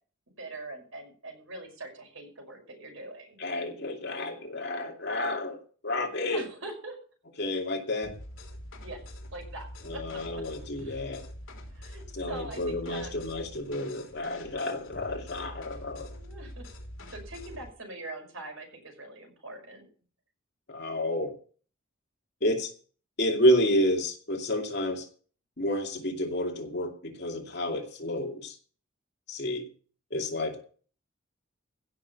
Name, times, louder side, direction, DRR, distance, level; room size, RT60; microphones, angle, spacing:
voice 1, 0.4-3.7 6.3-7.0 8.8-9.0 9.3-10.4 10.8-11.0 11.7-13.2 16.1-16.7 17.1-19.9, right 2 dB, 80° right, 2 dB, 5.7 m, -43 dB
voice 2, 3.4-5.6 5.8-6.4 7.4-8.1 9.9-11.2 12.1-16.1 20.7-21.3 22.4-22.7 23.2-25.0 25.6-28.5 29.3-29.7 30.1-30.6, left 1 dB, 50° left, 2 dB, 2.5 m, -30 dB
sound 1, 8.0-17.7, equal, 70° left, 3.5 m, -45 dB
16.0 x 6.5 x 7.0 m, 0.42 s
head